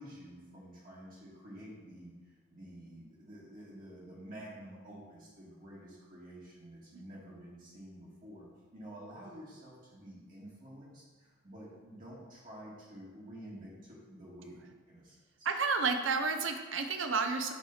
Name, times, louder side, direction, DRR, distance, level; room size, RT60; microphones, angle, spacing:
voice 1, 0.0-8.5 8.7-15.5, right 1 dB, 40° right, -7 dB, 1.6 m, -50 dB
voice 2, 15.4-17.5, right 4 dB, 70° right, 6 dB, 0.6 m, -31 dB
7.3 x 3.3 x 5.5 m, 1.3 s
head